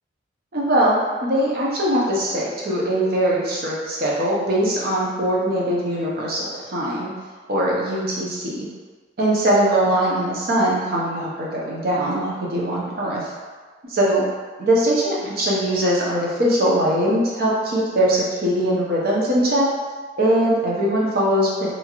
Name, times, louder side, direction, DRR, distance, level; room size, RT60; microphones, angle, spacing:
voice 1, 0.5-7.1 7.5-8.7 9.2-13.3 13.9-14.2 14.6-19.7 20.2-21.7, right 1 dB, 55° right, -5 dB, 0.7 m, -21 dB
2.8 x 2.4 x 2.9 m, 1.5 s
head